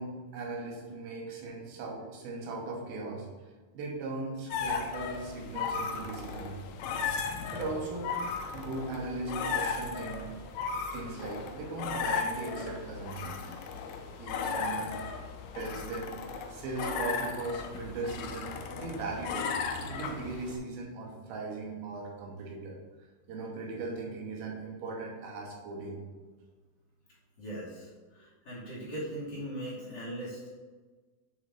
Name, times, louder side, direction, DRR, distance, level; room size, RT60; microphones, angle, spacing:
voice 1, 0.0-3.3 3.7-6.6 7.5-8.2 8.5-10.3 10.9-13.4 14.2-14.9 15.5-16.1 16.5-19.5 19.9-22.8 23.3-26.0, right 3 dB, 80° right, -1 dB, 3.0 m, -38 dB
sound 1, 4.5-20.6, left 5 dB, 85° left, 2.4 m, -36 dB
voice 2, 27.4-30.5, right 1 dB, 35° left, -8 dB, 2.5 m, -39 dB
8.3 x 6.4 x 2.6 m, 1.4 s
omnidirectional pair, 4.2 m